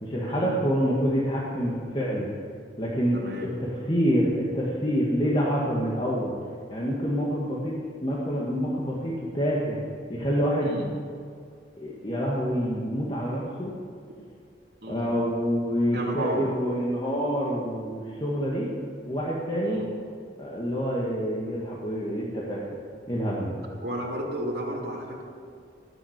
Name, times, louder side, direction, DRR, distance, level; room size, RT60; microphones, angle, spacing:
voice 1, 0.0-2.3 2.8-3.2 3.6-6.3 6.7-9.8 10.1-10.9 11.8-13.7 14.9-18.7 19.1-19.9 20.4-22.7 23.1-23.6, equal, 30° left, -5 dB, 1.9 m, -27 dB
voice 2, 3.1-3.5 10.6-10.9 14.8-15.1 15.9-16.5 19.6-19.9 23.8-25.2, equal, 65° right, -1 dB, 2.9 m, -32 dB
18.5 x 7.8 x 8.1 m, 2.3 s
head